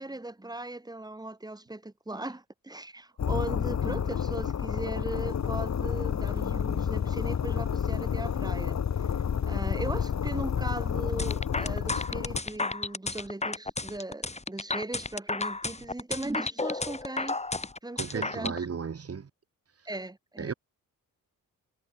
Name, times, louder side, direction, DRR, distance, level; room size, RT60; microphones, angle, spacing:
voice 1, 0.0-9.2 9.5-18.5 19.9-20.5, right 2 dB, 10° right, 6.8 m, -38 dB
sound 1, 3.2-12.4, left 7 dB, 50° left, 2.4 m, -30 dB
sound 2, 11.2-18.6, left 3 dB, 20° left, 3.2 m, -32 dB
voice 2, 17.9-19.3 20.4-20.5, right 6 dB, 45° right, 5.2 m, -34 dB
wide cardioid pair, 145°, 34 cm